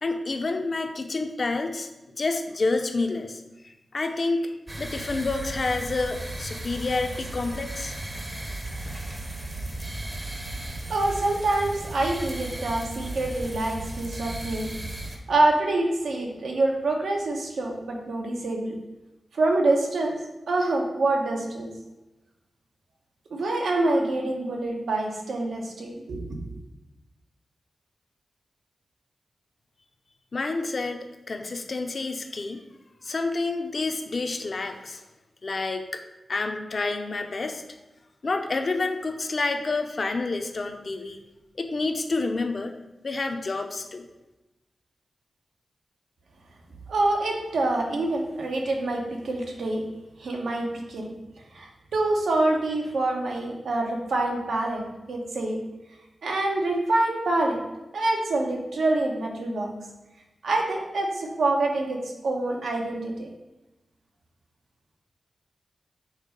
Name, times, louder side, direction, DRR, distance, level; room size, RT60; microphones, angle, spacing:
voice 1, 0.0-1.9 2.2-8.0 30.3-32.6 33.0-35.0 35.4-36.0 36.3-37.6 38.2-41.2 41.6-42.7 43.0-44.1, left 3 dB, 40° left, 5 dB, 0.6 m, -29 dB
sound 1, 4.7-15.2, right 1 dB, 25° right, 0.8 m, -35 dB
voice 2, 10.9-14.7 15.3-18.7 19.3-20.2 20.5-21.7 23.3-26.4 46.9-49.8 50.2-51.1 51.5-54.8 55.1-55.6 56.2-57.6 57.9-59.7 60.4-63.3, right 2 dB, 90° right, 0 dB, 1.2 m, -26 dB
5.6 x 4.1 x 5.2 m, 1.0 s
wide cardioid pair, 140°, 0 cm